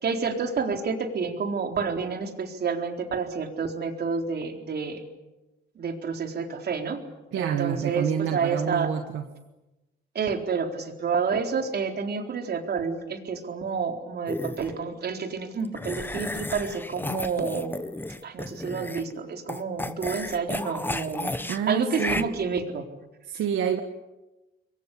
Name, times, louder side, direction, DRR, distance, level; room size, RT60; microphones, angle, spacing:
voice 1, 0.0-5.0 5.8-7.0 7.3-8.9 10.1-17.9 18.2-21.3 21.7-22.8, right 5 dB, 55° right, 4 dB, 4.1 m, -29 dB
voice 2, 7.3-9.3 21.5-22.2 23.3-23.8, right 8 dB, 80° right, 5 dB, 1.8 m, -27 dB
sound 1, 14.3-14.7 15.8-19.1 19.5-21.6 21.9-22.2, left 1 dB, 10° left, 1.5 m, -33 dB
28.5 x 22.5 x 8.5 m, 1.0 s
cardioid pair, 90°, 20 cm